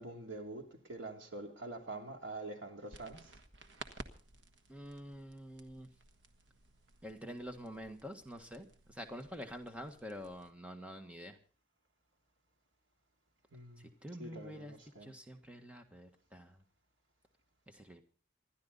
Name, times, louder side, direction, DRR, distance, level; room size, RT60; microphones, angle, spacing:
voice 1, 0.0-3.4 13.5-13.9 14.2-15.1, right 2 dB, 90° right, 2.9 m, -46 dB
sound 1, 2.9-10.5, right 3 dB, 75° right, 1.3 m, -55 dB
voice 2, 4.7-5.9 7.0-11.4 14.0-14.7 15.0-16.6 17.7-18.0, equal, 5° right, 1.5 m, -47 dB
27.0 x 11.5 x 4.0 m
head